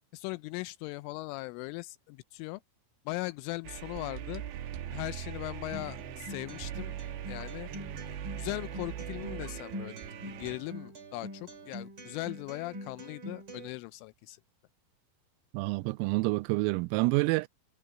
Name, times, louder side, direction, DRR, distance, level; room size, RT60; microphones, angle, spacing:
voice 1, 0.1-2.6 3.1-4.4 4.9-6.9 7.3-7.7 8.3-10.0 10.2-14.4, left 21 dB, 85° left, 2.9 m, -39 dB
sound 1, 3.6-10.6, right 10 dB, 70° right, 3.4 m, -41 dB
Acoustic guitar, 5.7-13.7, equal, 30° right, 2.7 m, -44 dB
voice 2, 15.5-17.5, right 24 dB, 85° right, 3.1 m, -28 dB
omnidirectional pair, 5.9 m